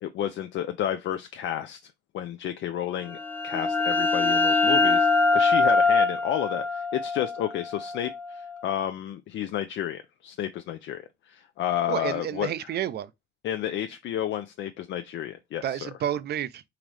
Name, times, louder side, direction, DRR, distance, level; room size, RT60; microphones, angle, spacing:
voice 1, 0.0-3.2 3.4-12.5 13.4-15.9, left 11 dB, 70° left, 0.4 m, -31 dB
sound 1, 3.1-8.6, left 3 dB, 10° left, 0.5 m, -23 dB
voice 2, 11.9-13.1 15.6-16.6, right 10 dB, 55° right, 0.4 m, -30 dB
3.8 x 3.0 x 3.1 m
cardioid pair, 90°, 20 cm